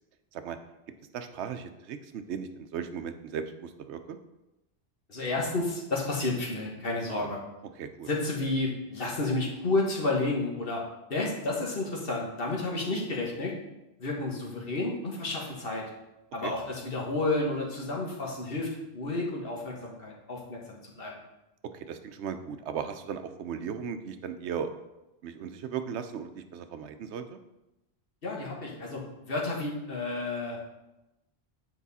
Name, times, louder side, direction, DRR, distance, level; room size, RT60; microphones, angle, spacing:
voice 1, 1.1-4.2 7.1-7.3 7.8-8.1 16.4-16.5 21.7-24.7 25.2-27.4, right 7 dB, 90° right, 9 dB, 0.9 m, -37 dB
voice 2, 5.1-7.4 8.1-10.8 11.1-13.5 14.0-15.9 16.3-21.2 28.2-30.7, left 2 dB, 60° left, -2 dB, 1.6 m, -31 dB
8.5 x 4.9 x 4.1 m, 0.97 s
omnidirectional pair, 1.1 m